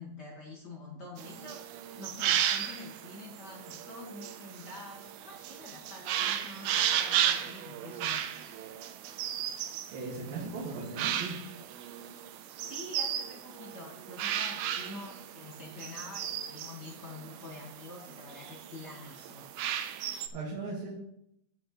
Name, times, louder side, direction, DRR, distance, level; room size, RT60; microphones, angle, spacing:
voice 1, 0.0-8.9 12.6-20.1, left 2 dB, 50° left, -2 dB, 1.2 m, -47 dB
sound 1, 1.2-20.3, right 10 dB, 80° right, 2.4 m, -35 dB
voice 2, 9.9-11.4 20.3-20.9, right 3 dB, 65° right, -5 dB, 3.5 m, -38 dB
17.0 x 6.1 x 3.1 m, 0.74 s
omnidirectional pair, 4.6 m